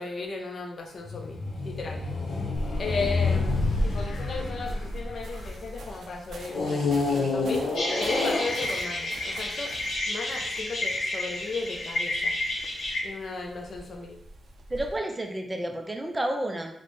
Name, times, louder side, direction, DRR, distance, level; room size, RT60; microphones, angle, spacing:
voice 1, 0.0-2.0 2.8-7.6 8.0-9.7 10.1-12.4 13.0-14.2, left 4 dB, 50° left, 2 dB, 0.5 m, -35 dB
sound 1, 1.0-5.8 6.5-9.0 9.7-9.8, left 3 dB, 85° left, 0.7 m, -29 dB
sound 2, 2.5-15.0, right 1 dB, 80° right, 0.4 m, -37 dB
sound 3, 7.7-13.0, left 1 dB, 70° left, 1.0 m, -31 dB
voice 2, 14.7-16.7, right 1 dB, 15° right, 3 dB, 0.4 m, -30 dB
4.0 x 2.1 x 3.2 m, 0.74 s
wide cardioid pair, 140°, 0 cm